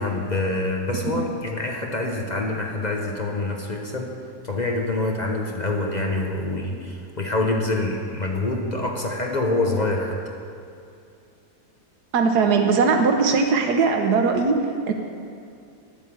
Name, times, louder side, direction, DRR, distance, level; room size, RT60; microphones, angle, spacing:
voice 1, 0.0-4.1 4.4-10.3, left 2 dB, 35° left, 1 dB, 0.8 m, -26 dB
voice 2, 12.1-14.6 14.9-15.0, right 5 dB, 80° right, 5 dB, 1.4 m, -19 dB
10.0 x 8.2 x 6.9 m, 2.5 s
omnidirectional pair, 1.7 m